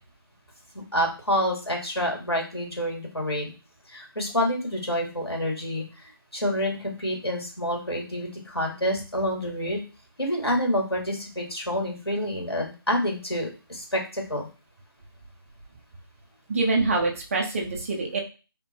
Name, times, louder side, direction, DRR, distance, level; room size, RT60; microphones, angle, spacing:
voice 1, 0.9-3.5 3.9-9.8 10.2-14.5, equal, 85° left, 0 dB, 2.4 m, -28 dB
voice 2, 16.5-18.2, right 3 dB, 35° right, 0 dB, 1.0 m, -25 dB
5.2 x 2.1 x 4.5 m, 0.33 s
figure-of-eight pair, 150°, 13 cm